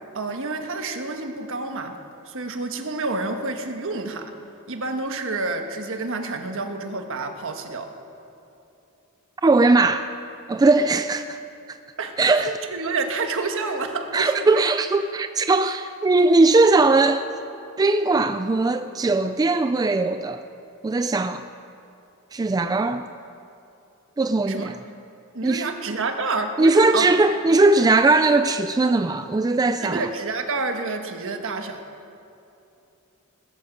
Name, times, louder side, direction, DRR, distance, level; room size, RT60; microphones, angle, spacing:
voice 1, 0.1-2.0 2.3-4.3 4.7-7.9 12.0-14.6 24.5-24.7 25.3-27.1 29.8-31.8, right 3 dB, 65° right, 1.3 m, -29 dB
voice 2, 9.4-10.1 10.5-11.4 11.7-11.8 12.2-12.5 14.1-17.2 17.8-20.4 20.8-21.4 22.3-23.1 24.2-24.8 25.4-25.7 26.6-30.1, right 3 dB, 15° right, 0.3 m, -19 dB
18.5 x 13.5 x 5.2 m
head